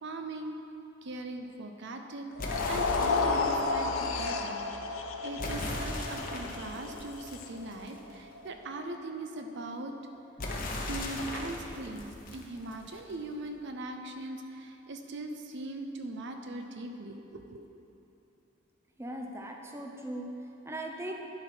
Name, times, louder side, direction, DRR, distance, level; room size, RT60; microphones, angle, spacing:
voice 1, 0.0-0.6 1.0-4.6 5.2-9.9 10.9-17.6, right 2 dB, 60° right, 5 dB, 0.6 m, -40 dB
sound 1, 2.4-8.6, left 4 dB, 85° left, 0.6 m, -32 dB
sound 2, 2.4-3.6 5.4-8.1 10.4-13.1, left 2 dB, 45° left, 1.0 m, -38 dB
voice 2, 19.0-21.1, right 1 dB, 15° right, 1 dB, 0.6 m, -39 dB
11.0 x 4.6 x 6.0 m, 2.9 s
head